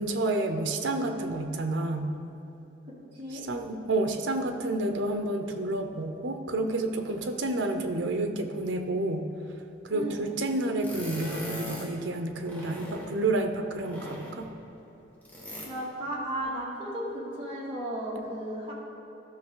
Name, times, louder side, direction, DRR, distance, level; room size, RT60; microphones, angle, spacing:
voice 1, 0.0-2.1 3.3-9.3 9.8-14.5, right 2 dB, 85° right, 6 dB, 0.7 m, -30 dB
voice 2, 3.1-3.4 9.9-10.2 15.6-18.7, right 1 dB, 30° right, -7 dB, 2.2 m, -34 dB
sound 1, 10.8-12.0 12.4-13.2 13.8-14.6 15.2-15.7, equal, 10° left, 1.3 m, -40 dB
13.0 x 5.8 x 3.9 m, 3.0 s
head